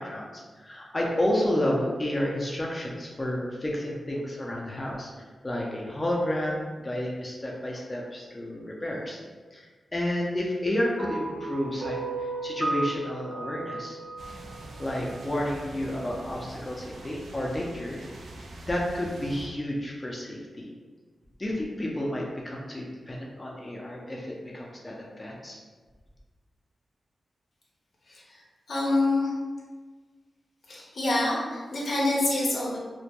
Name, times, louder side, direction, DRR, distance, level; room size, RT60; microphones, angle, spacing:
voice 1, 0.0-9.2 9.5-14.0 14.8-18.0 18.6-20.7 21.4-25.6, left 1 dB, 25° left, -3 dB, 0.4 m, -31 dB
sound 1, 11.0-15.3, right 3 dB, 55° right, 0.7 m, -34 dB
sound 2, 14.2-19.5, right 1 dB, 80° right, 0.3 m, -44 dB
voice 2, 28.1-29.3 30.7-32.8, left 2 dB, 75° left, -4 dB, 0.6 m, -27 dB
2.1 x 2.1 x 2.8 m, 1.4 s
cardioid pair, 60°, 0 cm